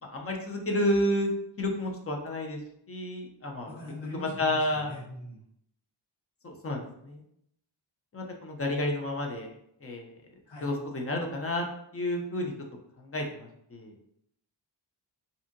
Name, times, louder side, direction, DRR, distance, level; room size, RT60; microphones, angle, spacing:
voice 1, 0.0-1.3 1.6-2.6 2.9-3.8 4.1-4.9 6.4-7.2 8.1-9.5 9.8-10.1 10.6-11.7 11.9-12.5 13.0-13.9, left 1 dB, 35° left, 1 dB, 0.4 m, -30 dB
voice 2, 3.6-5.4 10.5-10.7, left 1 dB, 70° left, -8 dB, 1.2 m, -42 dB
2.6 x 2.6 x 2.4 m, 0.73 s
wide cardioid pair, 175°, 47 cm